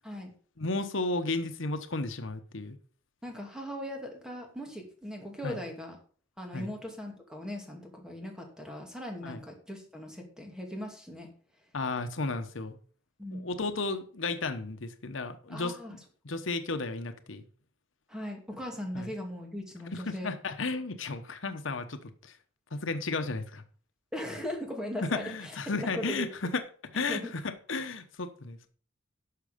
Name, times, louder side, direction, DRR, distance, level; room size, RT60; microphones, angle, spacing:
voice 1, 0.6-2.8 5.4-5.6 6.5-6.7 9.2-9.4 11.7-12.8 13.3-17.4 18.9-19.1 19.9-22.4 22.7-23.6 25.1-28.7, left 3 dB, 80° left, 8 dB, 1.0 m, -34 dB
voice 2, 3.2-6.0 6.4-11.3 13.2-13.5 15.5-16.0 18.1-20.3 24.1-26.3 27.1-27.3, equal, 5° right, 2 dB, 2.5 m, -39 dB
11.5 x 6.8 x 5.2 m, 0.44 s
head